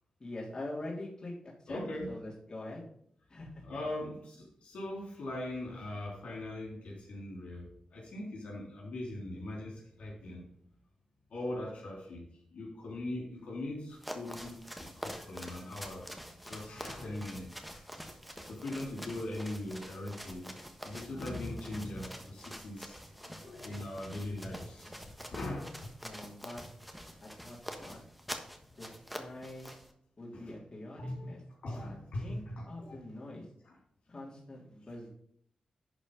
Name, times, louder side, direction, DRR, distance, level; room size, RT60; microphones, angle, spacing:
voice 1, 0.2-1.3 1.6-1.8 2.1-2.8 3.3-3.6 26.0-26.6 27.2-28.0 28.8-28.9 29.2-29.7 30.2-31.4 31.8-33.5 34.1-35.1, left 2 dB, 35° left, -4 dB, 3.4 m, -44 dB
voice 2, 1.7-2.1 3.7-10.4 11.3-12.2 12.5-17.9 18.5-25.0 25.3-25.8 30.3-30.5 31.0-31.3 31.6-33.0 33.7-33.8, left 1 dB, 85° left, -3 dB, 3.5 m, -40 dB
sound 1, 13.9-29.9, equal, ahead, 1.3 m, -46 dB
11.0 x 4.3 x 5.6 m, 0.68 s
cardioid pair, 75°, 2 cm